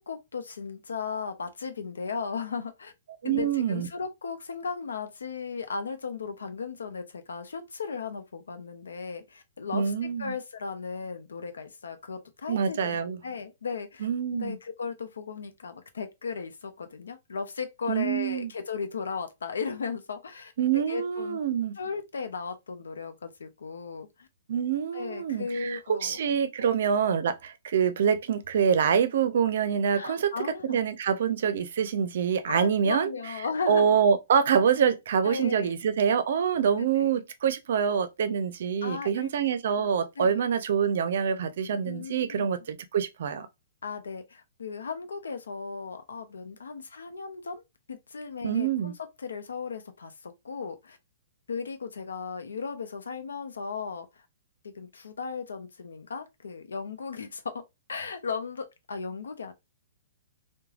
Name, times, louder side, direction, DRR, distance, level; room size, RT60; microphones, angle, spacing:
voice 1, 0.0-2.9 3.2-9.9 10.2-21.4 21.8-24.3 24.9-26.2 26.6-26.7 30.0-30.8 32.5-34.0 35.2-35.7 36.8-37.2 38.8-39.3 39.8-39.9 40.2-40.3 41.8-42.5 43.8-47.6 47.9-51.0 51.5-54.2 54.6-57.6 57.9-59.5, left 5 dB, 85° left, 0.6 m, -36 dB
voice 2, 3.2-3.9 9.7-10.3 12.5-13.2 14.0-14.6 17.9-18.5 20.6-21.7 24.5-30.3 30.6-33.1 33.7-43.5 48.4-48.9, right 7 dB, 65° right, 0.5 m, -26 dB
3.1 x 2.2 x 2.4 m
hypercardioid pair, 130°, 0 cm